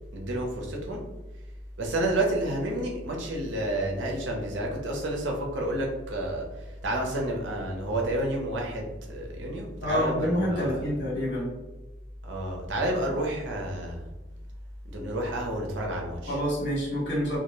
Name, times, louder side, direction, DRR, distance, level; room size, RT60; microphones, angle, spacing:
voice 1, 0.1-1.0 1.8-10.9 12.2-14.1 14.8-16.4, right 1 dB, 80° right, 0 dB, 0.6 m, -30 dB
voice 2, 9.8-11.5 16.3-17.4, equal, 65° left, -5 dB, 1.1 m, -27 dB
2.2 x 2.1 x 2.9 m, 1.1 s
head